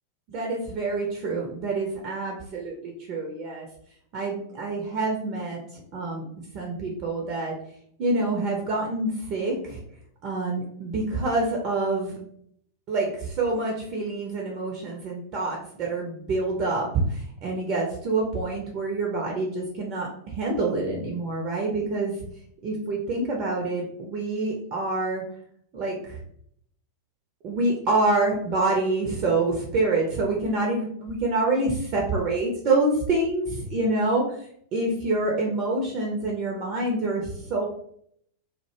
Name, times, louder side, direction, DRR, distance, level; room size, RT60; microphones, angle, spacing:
voice 1, 0.3-3.7 4.1-6.3 6.5-7.5 8.0-9.8 10.2-12.2 12.9-22.1 22.6-25.2 25.7-26.2 27.4-34.5 34.7-37.6, right 2 dB, 40° right, -1 dB, 0.5 m, -26 dB
2.1 x 2.1 x 2.9 m, 0.66 s
figure-of-eight pair, 90°, 0 cm